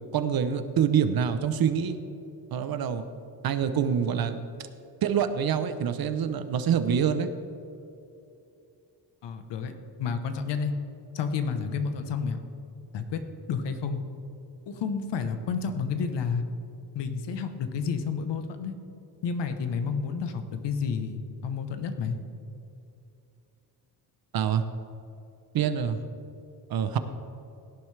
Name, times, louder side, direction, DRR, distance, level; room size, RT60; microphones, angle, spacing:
voice 1, 0.1-2.0 2.5-3.1 3.4-4.4 5.0-7.3 24.3-24.6 25.5-26.0 26.7-27.0, right 8 dB, 60° right, 10 dB, 0.8 m, -26 dB
voice 2, 9.2-9.7 10.0-10.8 11.1-12.4 12.9-13.2 13.5-14.0 14.7-16.4 16.9-18.7 19.2-22.2, left 5 dB, 90° left, 8 dB, 1.1 m, -30 dB
17.0 x 10.5 x 3.3 m, 2.8 s
wide cardioid pair, 150°, 41 cm